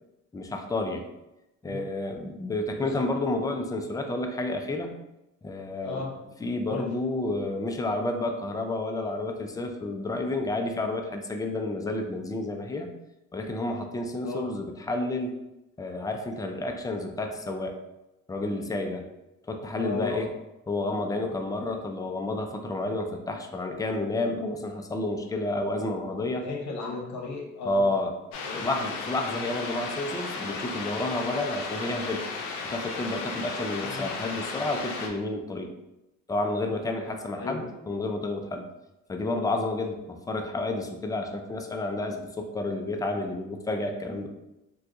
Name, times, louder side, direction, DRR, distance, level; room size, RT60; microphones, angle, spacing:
voice 1, 0.3-1.1 1.6-4.9 5.4-6.0 6.4-12.9 13.3-15.4 15.8-17.8 18.3-19.1 19.5-20.3 20.7-26.5 27.6-28.1 28.5-32.3 32.7-35.7 36.3-38.7 39.1-44.3, left 2 dB, 10° left, 4 dB, 0.4 m, -30 dB
voice 2, 5.8-6.1 6.7-6.9 14.2-14.5 19.7-20.3 26.2-27.9 28.4-28.7 33.8-34.1 37.4-37.7, left 4 dB, 65° left, -1 dB, 1.0 m, -35 dB
sound 1, 28.3-35.1, left 4 dB, 85° left, 0.5 m, -35 dB
2.6 x 2.3 x 3.6 m, 0.93 s
cardioid pair, 90°, 30 cm